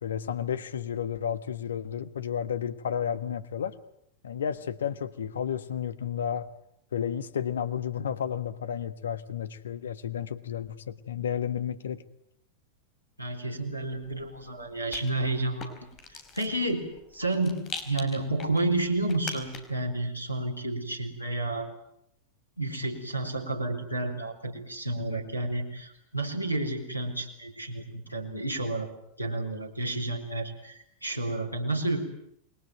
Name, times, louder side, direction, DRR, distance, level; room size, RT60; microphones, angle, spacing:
voice 1, 0.0-3.7 4.2-6.5 6.9-12.0, left 8 dB, 65° left, 16 dB, 1.4 m, -32 dB
voice 2, 13.2-15.8 16.1-16.9 17.1-21.7 22.6-28.9 29.2-32.1, right 2 dB, 85° left, 9 dB, 4.1 m, -31 dB
Rattle, 13.8-19.9, left 5 dB, 30° left, 4.4 m, -44 dB
28.5 x 21.5 x 9.2 m, 0.76 s
figure-of-eight pair, 90°, 0 cm